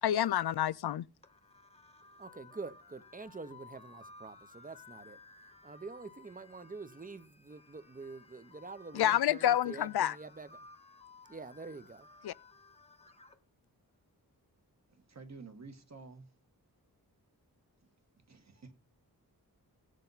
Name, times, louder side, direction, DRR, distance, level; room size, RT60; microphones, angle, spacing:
voice 1, 0.0-1.1 8.9-10.2 12.2-12.3, left 11 dB, 85° left, 0.5 m, -28 dB
sound 1, 1.2-13.4, left 4 dB, 15° left, 1.0 m, -57 dB
voice 2, 2.2-10.7 11.3-12.1, right 4 dB, 20° right, 0.7 m, -47 dB
voice 3, 14.9-16.3 18.3-18.7, right 4 dB, 45° right, 1.6 m, -51 dB
17.0 x 6.5 x 4.1 m
wide cardioid pair, 120°, 37 cm